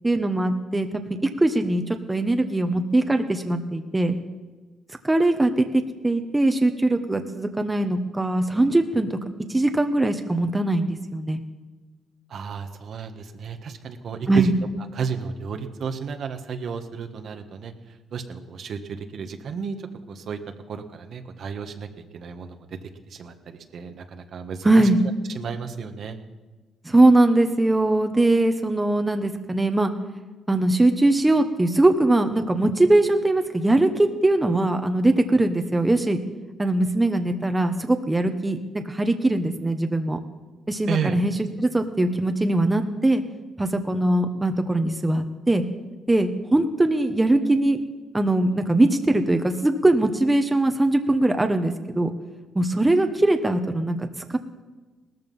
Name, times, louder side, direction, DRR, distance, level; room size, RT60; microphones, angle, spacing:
voice 1, 0.0-1.0 1.4-4.2 5.0-9.2 9.5-11.4 14.3-14.5 24.6-25.0 26.8-29.9 30.5-36.2 36.6-40.2 40.7-41.3 41.6-43.2 43.6-45.6 46.1-47.8 48.1-52.1 52.5-54.4, right 2 dB, 15° right, 6 dB, 1.2 m, -21 dB
voice 2, 12.3-14.5 14.9-17.7 18.1-19.8 20.1-20.4 20.7-21.9 22.1-22.8 23.1-24.9 25.3-26.2 40.9-41.2, right 6 dB, 60° right, 6 dB, 1.5 m, -32 dB
18.5 x 14.0 x 5.5 m, 1.3 s
cardioid pair, 90°, 0 cm